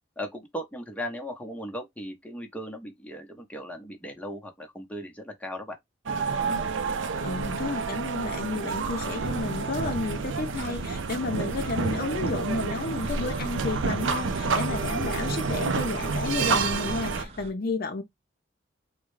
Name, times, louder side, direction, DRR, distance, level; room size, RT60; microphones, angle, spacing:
voice 1, 0.2-5.8, equal, 10° left, 0.7 m, -37 dB
sound 1, 6.1-17.3, right 4 dB, 70° right, 0.5 m, -29 dB
voice 2, 7.2-18.0, left 3 dB, 50° left, 0.6 m, -32 dB
sound 2, 8.9-17.5, right 1 dB, 30° right, 0.7 m, -45 dB
3.6 x 2.1 x 3.1 m
head